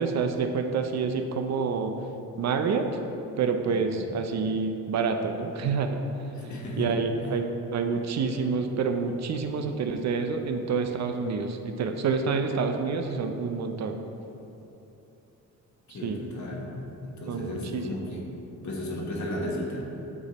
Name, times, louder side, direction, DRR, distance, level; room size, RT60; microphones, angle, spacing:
voice 1, 0.0-1.9 2.4-2.9 3.4-6.0 6.8-14.0 15.9-16.2 17.3-17.9, right 5 dB, 55° right, 6 dB, 0.5 m, -28 dB
voice 2, 3.7-4.2 6.4-7.0 15.9-16.7 17.0-18.3 18.6-19.8, left 1 dB, 60° left, -2 dB, 1.3 m, -34 dB
8.9 x 3.4 x 4.1 m, 2.9 s
cardioid pair, 90°, 33 cm